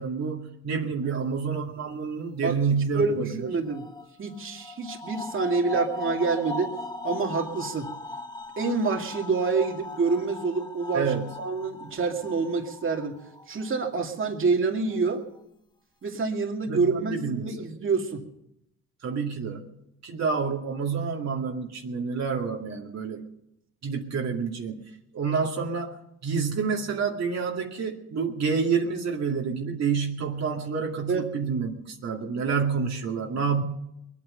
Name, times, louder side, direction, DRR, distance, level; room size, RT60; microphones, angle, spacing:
voice 1, 0.0-3.5 10.9-11.4 16.7-17.7 19.0-23.3 23.8-24.8 25.1-33.6, right 5 dB, 60° right, -1 dB, 2.3 m, -28 dB
voice 2, 2.9-3.9 4.2-6.7 7.0-7.9 8.6-13.2 13.5-15.2 16.0-18.2 31.1-31.2, right 4 dB, 45° right, 2 dB, 2.5 m, -27 dB
sound 1, 3.5-14.3 14.9-15.4, left 2 dB, 15° left, 1.2 m, -39 dB
22.0 x 9.0 x 6.7 m, 0.79 s
cardioid pair, 90°, 30 cm